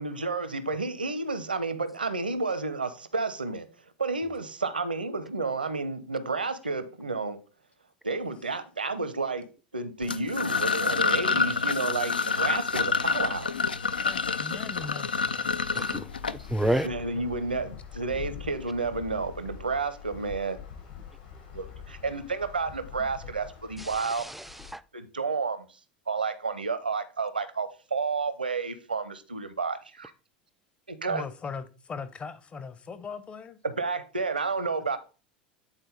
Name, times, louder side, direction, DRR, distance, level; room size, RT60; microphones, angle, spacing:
voice 1, 0.0-3.7 4.0-7.4 8.0-9.5 9.7-13.5 16.8-20.6 21.5-24.3 24.9-25.7 26.1-30.1 30.9-31.2 33.6-35.0, right 4 dB, 80° right, 0.7 m, -31 dB
sound 1, 10.0-16.9, left 5 dB, 80° left, 0.4 m, -28 dB
sound 2, 12.2-24.7, left 8 dB, 65° left, 3.0 m, -46 dB
voice 2, 13.9-15.6 23.0-23.1 31.1-33.6, left 5 dB, 25° left, 0.8 m, -40 dB
voice 3, 15.7-16.9 23.8-24.8, right 1 dB, 5° right, 0.4 m, -31 dB
9.0 x 3.9 x 3.9 m
figure-of-eight pair, 80°, 5 cm